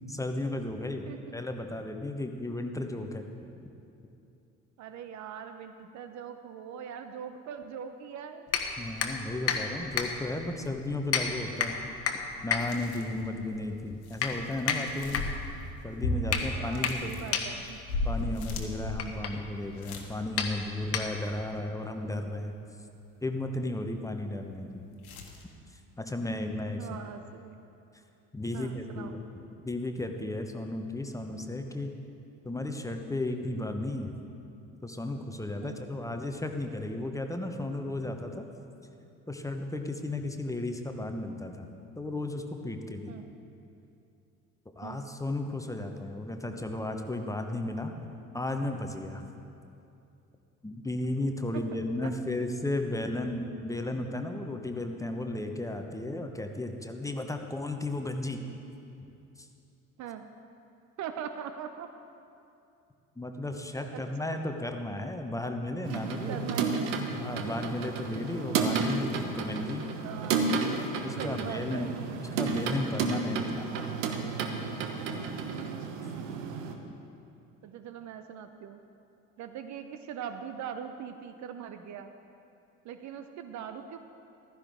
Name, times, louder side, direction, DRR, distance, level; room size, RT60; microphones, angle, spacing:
voice 1, 0.1-1.1 1.3-3.2 8.8-11.8 12.4-15.3 15.8-17.4 18.0-22.5 23.2-24.8 26.0-26.9 28.3-29.3 29.5-32.0 32.4-34.1 34.8-38.4 39.3-41.7 42.0-43.1 44.8-47.9 48.3-49.3 50.6-58.4 59.4-59.5 63.2-66.6 67.1-69.9 70.8-71.9 72.4-73.7, left 2 dB, 5° left, 5 dB, 1.1 m, -34 dB
voice 2, 4.8-8.6 16.5-17.8 26.8-27.6 28.5-29.2 35.6-35.8 43.1-43.3 44.8-45.0 51.5-51.6 52.0-52.1 60.0-60.3 61.0-61.9 63.9-64.0 66.3-66.9 70.0-70.9 71.2-71.9 76.2-76.3 77.6-78.8 79.4-82.1 82.8-84.0, right 8 dB, 40° right, 8 dB, 0.7 m, -41 dB
sound 1, 8.5-21.5, left 6 dB, 35° left, 1.3 m, -34 dB
sound 2, 12.6-13.3 13.6-15.7 16.0-20.1 20.5-20.6 25.0-25.4, left 2 dB, 75° left, 1.4 m, -35 dB
sound 3, 65.8-76.7, right 4 dB, 65° right, 1.2 m, -32 dB
15.0 x 13.0 x 3.6 m, 2.7 s
figure-of-eight pair, 60°, 43 cm